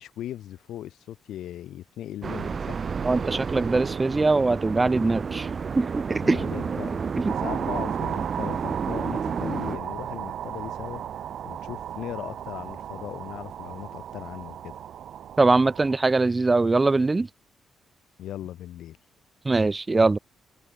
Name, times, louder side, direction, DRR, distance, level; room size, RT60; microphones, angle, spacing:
voice 1, 0.0-2.8 6.2-7.0 7.2-11.0 11.4-14.7 18.2-19.0, left 12 dB, 75° left, 4.1 m, -38 dB
sound 1, 2.2-9.8, right 6 dB, 30° right, 5.9 m, -31 dB
voice 2, 3.0-5.5 5.7-6.5 7.2-7.3 15.4-17.3 19.4-20.2, right 3 dB, 15° right, 1.5 m, -22 dB
sound 2, 7.3-16.0, right 10 dB, 60° right, 2.1 m, -35 dB
cardioid pair, 165°, 0 cm